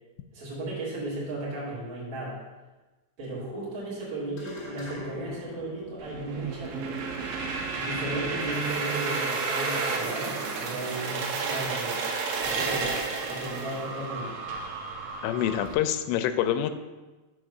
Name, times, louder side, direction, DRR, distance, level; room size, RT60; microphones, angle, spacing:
voice 1, 0.3-2.4 3.2-7.0 7.7-12.0 12.4-14.4, right 2 dB, 25° right, -7 dB, 2.1 m, -35 dB
sound 1, 4.4-9.0, left 2 dB, 55° left, 1.6 m, -46 dB
sound 2, 6.0-15.7, right 4 dB, 75° right, 2.7 m, -31 dB
voice 2, 15.2-16.7, left 11 dB, 85° left, 10 dB, 2.8 m, -26 dB
6.5 x 4.8 x 6.4 m, 1.2 s
omnidirectional pair, 5.0 m